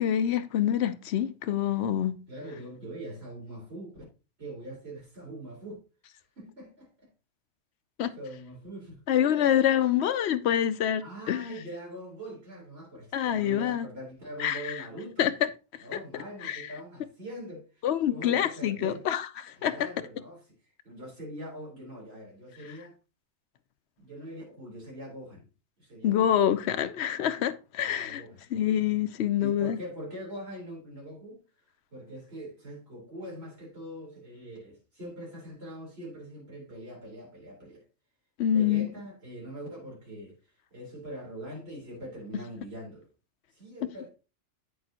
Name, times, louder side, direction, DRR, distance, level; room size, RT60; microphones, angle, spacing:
voice 1, 0.0-2.2 8.0-8.1 9.1-11.5 13.1-13.9 14.4-14.7 15.2-15.3 15.9-16.6 17.8-19.7 26.0-28.2 28.5-29.8 38.4-38.9, left 10 dB, 70° left, 0.8 m, -26 dB
voice 2, 2.3-4.0 4.4-5.8 6.4-7.1 8.1-9.0 9.3-9.5 11.0-15.3 15.8-19.1 19.6-23.0 24.0-25.5 25.8-26.3 27.9-28.4 29.4-31.4 31.9-37.8 38.5-40.4 40.7-43.1 43.5-44.1, equal, 55° right, 4.1 m, -43 dB
8.7 x 6.7 x 2.9 m
omnidirectional pair, 1.2 m